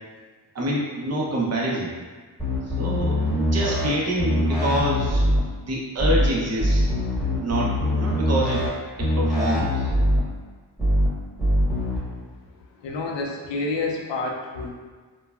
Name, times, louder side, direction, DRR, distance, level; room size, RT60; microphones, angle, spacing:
voice 1, 0.5-1.9 2.7-5.3 5.7-6.9 7.4-8.7 9.0-9.9, right 1 dB, 40° right, -4 dB, 0.6 m, -26 dB
sound 1, 2.4-3.9 4.2-5.4 6.0-6.3 6.6-8.7 9.0-10.2 10.8-11.1 11.4-12.0, equal, ahead, 1.1 m, -22 dB
voice 2, 12.8-14.7, left 3 dB, 85° left, 0 dB, 0.5 m, -28 dB
3.1 x 2.1 x 2.3 m, 1.5 s
wide cardioid pair, 90°, 42 cm